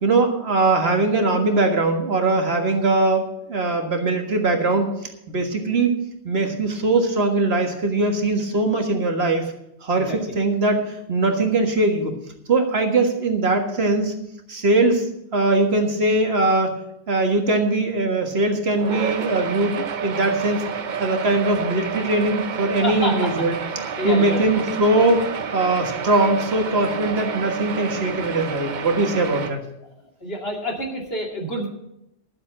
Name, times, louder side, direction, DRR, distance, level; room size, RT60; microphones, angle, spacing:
voice 1, 0.0-4.9 5.3-6.0 6.2-9.5 9.8-12.2 12.5-14.1 14.5-16.8 17.1-20.6 21.0-23.5 24.0-25.3 25.5-29.6, right 2 dB, 70° right, 4 dB, 1.9 m, -21 dB
sound 1, 18.8-29.5, right 6 dB, 50° right, 0.8 m, -30 dB
voice 2, 22.8-23.2 23.7-24.5 30.2-31.7, equal, 65° left, 0 dB, 2.8 m, -28 dB
12.5 x 7.4 x 7.5 m, 0.83 s
omnidirectional pair, 1.1 m